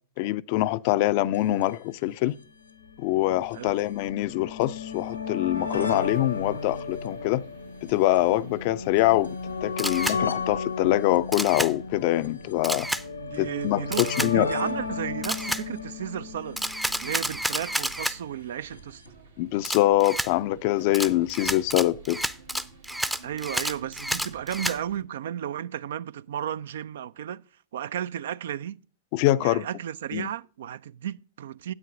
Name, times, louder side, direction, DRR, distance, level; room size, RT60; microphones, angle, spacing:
voice 1, 0.2-2.4 3.0-7.4 7.8-12.9 13.4-14.5 19.4-22.2 29.1-29.7 30.1-30.3, left 16 dB, 50° left, 0.4 m, -24 dB
sound 1, 1.3-1.4 1.6-1.7 2.6-17.8 18.8-18.9 19.0-19.1, left 4 dB, 85° left, 1.0 m, -34 dB
sound 2, 5.7-25.0, right 3 dB, 85° right, 1.9 m, -51 dB
Camera, 9.8-10.2 11.3-11.7 12.6-13.0 13.9-14.3 15.2-15.6 16.6-18.2 19.6-20.3 20.9-24.8, equal, 5° right, 0.5 m, -30 dB
voice 2, 13.2-16.6 17.0-19.0 23.2-27.4 27.7-28.8 29.4-31.7, right 10 dB, 65° right, 0.3 m, -34 dB
9.6 x 8.3 x 3.7 m
figure-of-eight pair, 95°, 0 cm